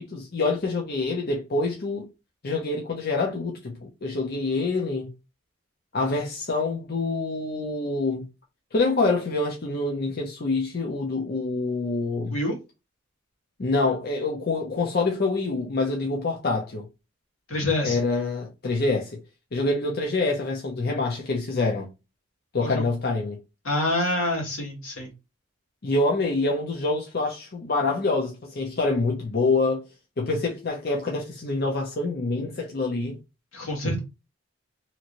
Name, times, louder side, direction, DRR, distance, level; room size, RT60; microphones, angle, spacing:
voice 1, 0.0-2.0 2.4-5.1 5.9-8.3 8.7-12.4 13.6-16.8 17.8-19.2 19.5-21.9 22.5-23.4 25.8-29.9 30.2-33.2, left 3 dB, 50° left, 0.6 m, -26 dB
voice 2, 17.5-18.0 22.6-22.9 23.6-25.1 33.5-34.0, left 1 dB, 85° left, 1.5 m, -26 dB
2.9 x 2.6 x 2.9 m
head